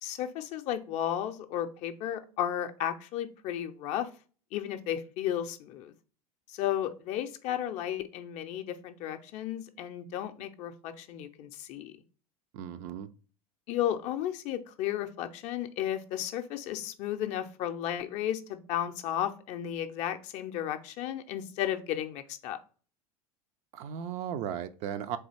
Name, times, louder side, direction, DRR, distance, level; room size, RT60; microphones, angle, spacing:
voice 1, 0.0-4.1 4.5-5.9 6.5-11.9 13.7-22.6, left 11 dB, 40° left, 7 dB, 0.5 m, -34 dB
voice 2, 12.5-13.1 23.7-25.2, right 9 dB, 40° right, 11 dB, 0.4 m, -36 dB
3.9 x 3.3 x 3.1 m, 0.38 s
figure-of-eight pair, 80°, 19 cm